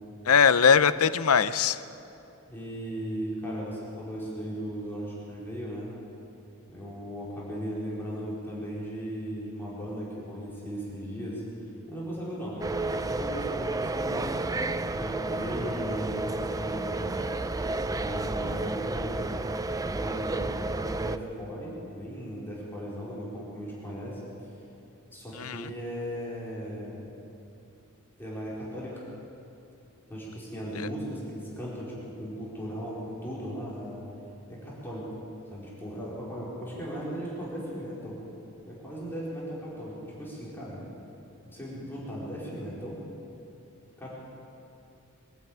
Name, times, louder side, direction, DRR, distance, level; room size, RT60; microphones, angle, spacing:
voice 1, 0.3-1.8 25.4-25.7 30.8-30.9, left 6 dB, 75° left, 14 dB, 0.7 m, -21 dB
voice 2, 2.5-5.9 6.7-11.4 11.9-14.2 14.9-19.3 19.9-24.2 25.1-27.0 28.2-29.0 30.1-34.0 34.5-35.1 35.5-38.2 38.7-40.9 41.5-43.0 44.0-44.1, equal, 10° left, -7 dB, 4.6 m, -37 dB
sound 1, 12.6-21.2, right 2 dB, 15° right, 0.5 m, -31 dB
23.5 x 12.5 x 8.8 m, 2.8 s
head